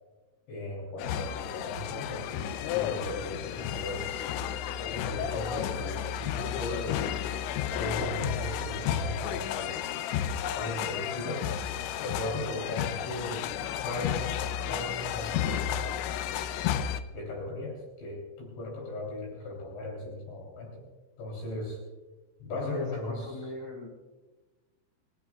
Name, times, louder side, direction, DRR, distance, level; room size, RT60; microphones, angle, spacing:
voice 1, 0.5-4.2 4.8-7.2 7.8-9.9 10.5-11.5 12.0-13.5 13.8-14.3 14.7-15.9 17.1-20.8 21.2-21.8 22.4-23.5, left 1 dB, 70° left, -1 dB, 5.5 m, -37 dB
sound 1, 1.0-17.0, left 10 dB, 85° left, 2.8 m, -32 dB
voice 2, 22.5-23.9, left 1 dB, 45° left, 1 dB, 1.5 m, -40 dB
30.0 x 14.5 x 2.3 m, 1.2 s
omnidirectional pair, 5.5 m